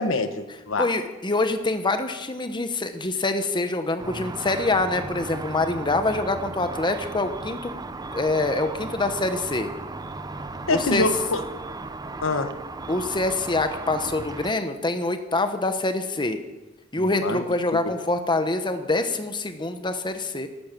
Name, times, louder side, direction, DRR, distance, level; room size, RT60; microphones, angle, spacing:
voice 1, 0.0-0.9 10.7-11.4 12.2-12.5 17.0-17.4, left 2 dB, 80° left, 9 dB, 1.1 m, -25 dB
voice 2, 0.8-7.7 8.1-9.7 10.7-11.1 12.9-16.4 16.9-20.5, left 2 dB, 25° left, 8 dB, 1.0 m, -25 dB
Car / Traffic noise roadway noise / Engine, 4.0-14.5, right 3 dB, 20° right, 0.6 m, -36 dB
12.0 x 12.0 x 7.5 m, 1.1 s
head